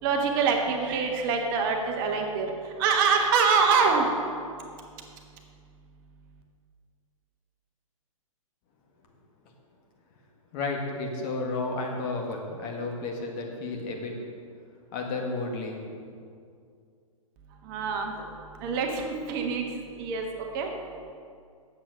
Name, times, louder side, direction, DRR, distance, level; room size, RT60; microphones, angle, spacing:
voice 1, 0.0-4.1 17.6-18.2 18.6-19.7 20.0-21.0, right 5 dB, 40° right, 2 dB, 1.3 m, -25 dB
voice 2, 10.5-14.2 14.9-15.8, left 3 dB, 35° left, 1 dB, 1.7 m, -32 dB
9.0 x 7.6 x 6.2 m, 2.3 s
figure-of-eight pair, 115°, 18 cm